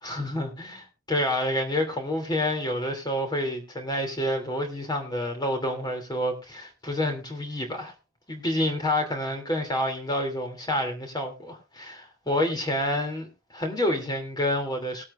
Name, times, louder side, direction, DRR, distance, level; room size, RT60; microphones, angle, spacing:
voice 1, 0.0-7.9 8.3-15.0, left 1 dB, 20° left, 2.9 m, -28 dB
20.0 x 8.5 x 2.5 m
head